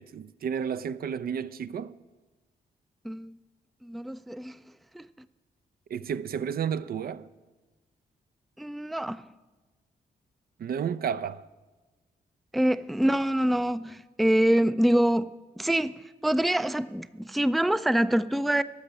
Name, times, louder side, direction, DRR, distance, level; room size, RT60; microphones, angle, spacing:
voice 1, 0.0-2.0 5.9-7.3 10.6-11.5, right 7 dB, 60° right, 0.5 m, -32 dB
voice 2, 3.0-3.4 3.8-4.6 4.9-5.1 8.6-9.3 12.5-18.6, right 1 dB, ahead, 0.4 m, -25 dB
13.5 x 6.1 x 8.8 m
cardioid pair, 60°, 17 cm